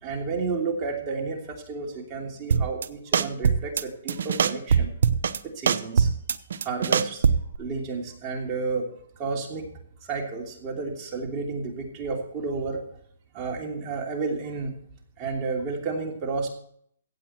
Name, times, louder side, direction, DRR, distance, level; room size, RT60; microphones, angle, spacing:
voice 1, 0.0-4.9 5.4-6.1 6.6-7.2 7.6-8.9 9.2-9.7 10.0-12.8 13.3-14.7 15.2-16.5, right 4 dB, 25° right, 0 dB, 2.9 m, -31 dB
sound 1, 2.5-2.9 3.1-3.8 4.1-5.4 5.7-7.6, right 6 dB, 70° right, 0.8 m, -22 dB
15.5 x 8.6 x 4.5 m, 0.64 s
hypercardioid pair, 150°, 0 cm